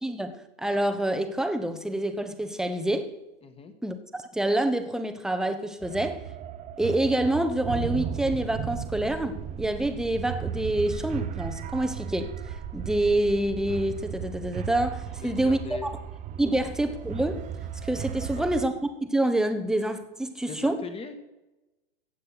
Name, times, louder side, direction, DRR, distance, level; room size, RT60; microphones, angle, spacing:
voice 1, 0.0-3.1 3.8-3.9 4.3-6.2 6.8-12.3 12.7-15.9 16.4-17.5 17.8-18.7 19.0-20.8, right 1 dB, ahead, 8 dB, 1.0 m, -27 dB
voice 2, 3.4-3.7 15.2-15.9 16.5-16.7 18.2-18.5 20.5-21.2, left 6 dB, 20° left, 8 dB, 1.7 m, -40 dB
sound 1, 5.8-18.7, right 8 dB, 25° right, 0.8 m, -35 dB
15.0 x 8.3 x 5.9 m, 1.0 s
hypercardioid pair, 110°, 31 cm